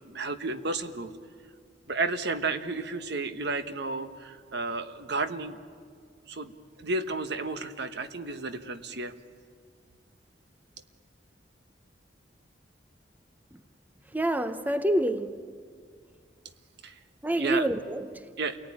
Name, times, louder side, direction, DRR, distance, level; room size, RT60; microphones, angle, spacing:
voice 1, 0.1-1.1 1.9-5.6 6.3-9.1 16.8-17.0 17.4-17.7 18.4-18.6, right 3 dB, 65° right, 1.2 m, -32 dB
voice 2, 14.1-15.4 17.2-18.2, right 1 dB, 10° right, 0.6 m, -27 dB
28.5 x 18.5 x 9.9 m
head